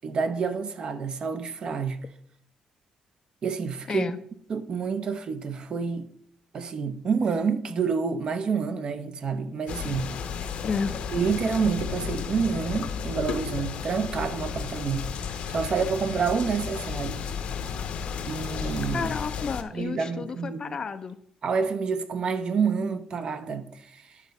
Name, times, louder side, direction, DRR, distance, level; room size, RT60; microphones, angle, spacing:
voice 1, 0.0-2.0 3.4-4.1 4.5-6.1 6.5-10.1 11.1-17.2 18.3-19.1 19.7-20.8 21.4-24.2, right 5 dB, 45° right, 0.7 m, -28 dB
voice 2, 3.9-4.2 10.6-11.0 18.9-21.2, left 5 dB, 35° left, 0.5 m, -31 dB
sound 1, 9.7-19.6, left 6 dB, 65° left, 0.9 m, -33 dB
9.9 x 4.1 x 5.3 m
cardioid pair, 120°, 2 cm